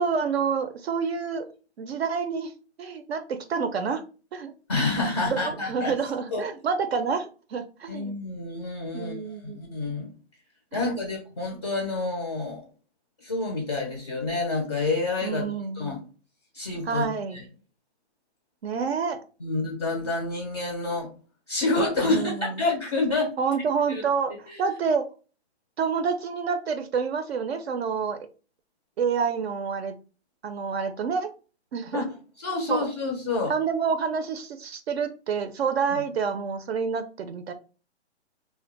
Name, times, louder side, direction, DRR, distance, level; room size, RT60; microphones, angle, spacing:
voice 1, 0.0-1.5 1.8-2.5 2.8-4.0 4.3-4.5 5.3-8.2 8.9-9.6 10.7-10.8 15.2-15.8 16.9-17.4 18.6-19.2 22.1-22.6 23.4-25.0 25.8-28.2 29.0-30.0 30.4-31.3 31.7-32.1 32.7-32.9 33.5-37.5, right 6 dB, 65° right, 8 dB, 0.5 m, -28 dB
voice 2, 4.7-5.9 6.3-6.4 7.9-10.1 10.7-12.7 13.2-15.4 15.7-16.0 16.5-17.1 17.3-17.4 19.4-21.1 21.5-23.3 23.9-24.0 24.5-24.6 31.9-33.5 35.9-36.0, left 3 dB, 25° left, 1 dB, 0.4 m, -28 dB
2.2 x 2.0 x 3.8 m, 0.36 s
hypercardioid pair, 160°, 34 cm